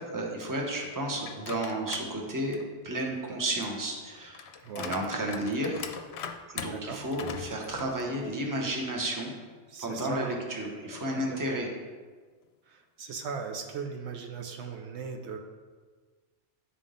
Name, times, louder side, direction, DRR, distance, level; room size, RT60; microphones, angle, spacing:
voice 1, 0.1-2.6 2.8-4.4 4.7-5.9 6.5-9.3 9.8-11.7, right 1 dB, 20° right, 0 dB, 0.9 m, -32 dB
sound 1, 1.2-2.1 2.5-8.6 9.0-9.1 10.1-11.6, left 7 dB, 70° left, 0.8 m, -43 dB
voice 2, 4.6-5.0 6.7-7.0 9.7-10.4 11.1-11.6 12.7-15.4, right 5 dB, 75° right, 4 dB, 0.9 m, -38 dB
9.9 x 3.7 x 3.8 m, 1.5 s
omnidirectional pair, 1.2 m